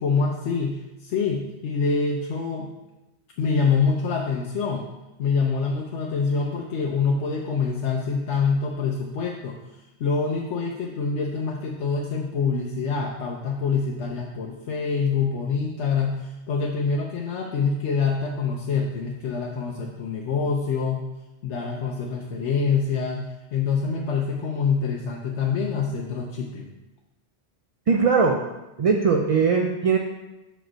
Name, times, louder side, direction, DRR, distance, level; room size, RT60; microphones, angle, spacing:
voice 1, 0.0-2.7 3.4-4.8 5.2-9.6 10.0-21.0 21.4-23.2 23.5-26.7, left 5 dB, 80° left, -1 dB, 1.0 m, -25 dB
voice 2, 27.9-28.4 28.8-30.0, right 5 dB, 60° right, 1 dB, 0.3 m, -20 dB
5.0 x 4.5 x 6.1 m, 1.0 s
omnidirectional pair, 1.2 m